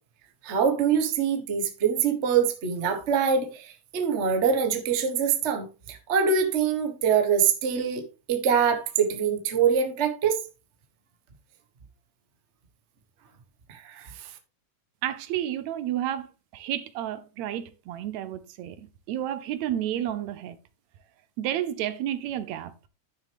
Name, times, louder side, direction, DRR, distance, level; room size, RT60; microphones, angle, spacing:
voice 1, 0.4-8.0 8.3-10.4 13.7-14.1, right 7 dB, 45° right, 0.9 m, -24 dB
voice 2, 15.0-20.6 21.4-22.7, right 11 dB, 75° right, 1.9 m, -31 dB
11.5 x 6.5 x 3.4 m
omnidirectional pair, 3.3 m